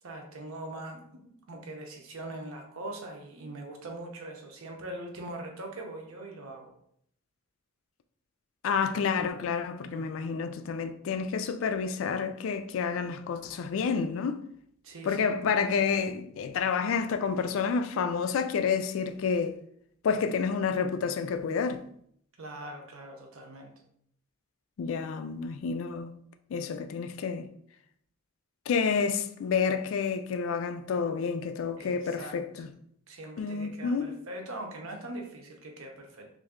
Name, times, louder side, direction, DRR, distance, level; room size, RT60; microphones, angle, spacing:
voice 1, 0.0-6.7 9.9-10.4 14.8-15.3 22.4-23.8 31.8-32.7 33.1-36.3, right 1 dB, 85° right, 0.7 m, -42 dB
voice 2, 8.6-14.4 15.0-19.6 20.0-21.8 24.8-26.1 26.5-27.5 28.7-32.7 33.4-34.1, left 5 dB, 70° left, 0.3 m, -29 dB
3.3 x 2.6 x 3.6 m
head